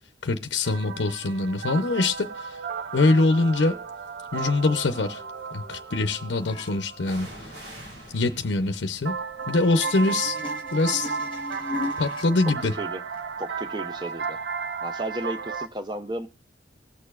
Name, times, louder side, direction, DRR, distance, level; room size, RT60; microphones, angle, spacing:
voice 1, 0.2-2.6 2.9-3.7 4.3-5.2 5.5-7.5 8.1-9.1 9.5-10.4 10.7-11.2 12.0-12.7, left 2 dB, 75° left, 0.6 m, -24 dB
sound 1, 0.6-8.1 9.1-15.7, right 5 dB, 65° right, 0.8 m, -34 dB
sound 2, 3.8-4.1 7.0-14.6 14.9-15.0, right 1 dB, 85° right, 4.6 m, -49 dB
sound 3, 6.4-6.7 9.4-12.3 13.1-13.2, left 3 dB, 25° left, 1.1 m, -37 dB
voice 2, 13.4-14.4 14.8-16.3, right 1 dB, 25° right, 0.7 m, -33 dB
20.0 x 6.7 x 2.3 m
head